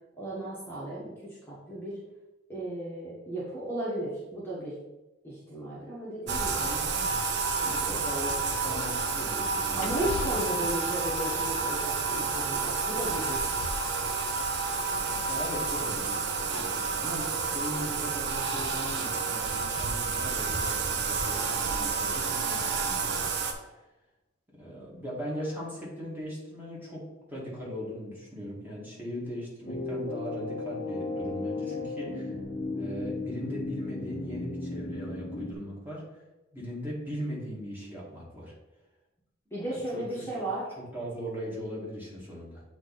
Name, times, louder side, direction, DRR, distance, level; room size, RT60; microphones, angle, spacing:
voice 1, 0.2-2.0 2.5-4.8 5.2-6.7 7.8-7.9 9.7-13.4 39.5-40.7, right 1 dB, 10° left, -8 dB, 1.4 m, -35 dB
Bathtub (filling or washing), 6.3-23.5, right 4 dB, 60° right, 0.7 m, -30 dB
voice 2, 6.5-7.1 7.5-8.3 8.6-10.0 10.3-10.4 14.9-23.8 24.6-32.3 32.8-36.2 36.5-38.5 39.9-40.3 40.9-42.6, equal, 10° right, -6 dB, 2.0 m, -39 dB
sound 1, 7.6-16.1, left 6 dB, 70° left, 0.3 m, -43 dB
sound 2, 29.7-35.5, left 2 dB, 40° left, 0.9 m, -35 dB
8.2 x 3.1 x 4.1 m, 1.0 s
head